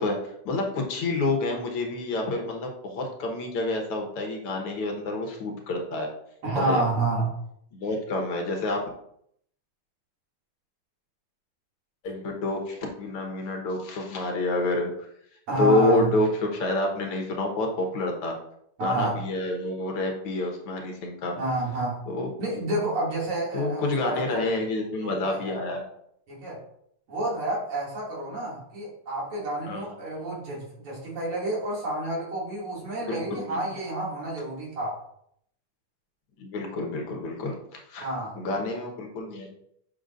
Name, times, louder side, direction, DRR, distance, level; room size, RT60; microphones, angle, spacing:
voice 1, 0.0-6.1 6.6-6.8 7.7-8.8 12.0-15.1 15.6-18.4 18.8-21.3 22.1-22.6 23.5-25.8 29.7-29.9 33.0-33.6 36.4-38.1 38.4-39.5, left 2 dB, 85° left, 2 dB, 2.2 m, -28 dB
voice 2, 6.4-7.3 15.5-16.1 18.8-19.2 21.4-22.0 22.4-24.4 25.0-25.5 26.3-26.6 27.1-35.0 38.0-38.4, right 2 dB, 85° right, -5 dB, 3.4 m, -29 dB
8.0 x 5.9 x 2.5 m, 0.71 s
omnidirectional pair, 2.4 m